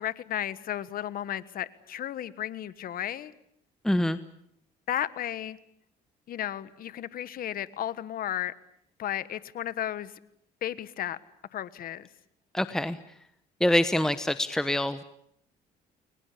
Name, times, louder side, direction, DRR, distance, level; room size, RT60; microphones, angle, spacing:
voice 1, 0.0-3.3 4.9-5.6 6.3-8.5 9.0-10.1 10.6-11.2 11.5-12.1, left 11 dB, 60° left, 15 dB, 1.5 m, -33 dB
voice 2, 3.8-4.2 12.5-13.0 13.6-15.0, left 1 dB, 5° left, 11 dB, 1.1 m, -25 dB
29.5 x 22.5 x 8.6 m, 0.72 s
cardioid pair, 110°, 17 cm